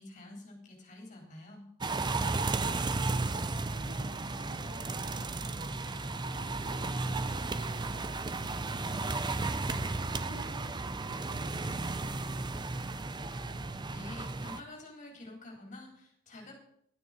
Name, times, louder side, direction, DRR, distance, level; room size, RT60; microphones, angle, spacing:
voice 1, 0.0-1.7 13.9-16.5, left 2 dB, 35° left, 1 dB, 3.9 m, -48 dB
sound 1, 1.8-14.6, right 3 dB, 20° right, 0.5 m, -34 dB
voice 2, 2.9-9.6 10.1-13.3, equal, 40° right, 2 dB, 2.8 m, -54 dB
12.0 x 9.3 x 6.6 m, 0.68 s
head